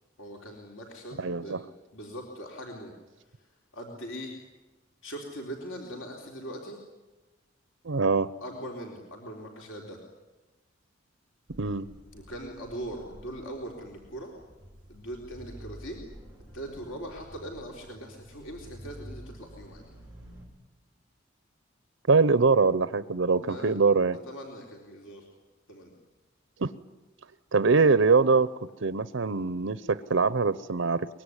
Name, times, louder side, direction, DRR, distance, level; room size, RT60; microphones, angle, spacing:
voice 1, 0.2-1.6 1.9-2.9 3.2-4.4 5.0-6.8 8.4-10.0 12.1-14.3 14.9-16.0 16.5-19.8 23.3-23.7 24.3-25.3 25.7-25.9, equal, 85° left, 1 dB, 3.8 m, -41 dB
voice 2, 1.2-1.6 7.8-8.3 11.6-11.9 22.1-24.2 26.6-26.7 27.5-28.5 28.8-31.1, right 4 dB, 75° right, 15 dB, 0.7 m, -23 dB
sound 1, 11.5-20.5, right 1 dB, 5° right, 7.1 m, -49 dB
23.5 x 21.5 x 9.8 m, 1.2 s
head